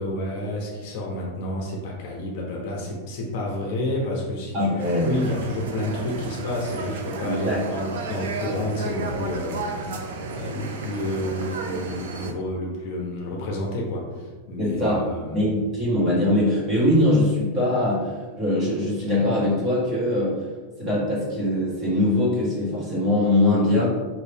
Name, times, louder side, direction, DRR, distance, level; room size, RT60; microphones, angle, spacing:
voice 1, 0.0-9.9 10.2-15.4, left 1 dB, 45° left, -1 dB, 0.9 m, -30 dB
voice 2, 4.5-5.2 7.2-7.7 14.6-20.5 20.8-23.9, left 1 dB, 20° right, -7 dB, 1.5 m, -22 dB
sound 1, 4.8-12.3, right 3 dB, 85° right, 0.6 m, -33 dB
5.5 x 2.7 x 3.4 m, 1.3 s
supercardioid pair, 170°, 0 cm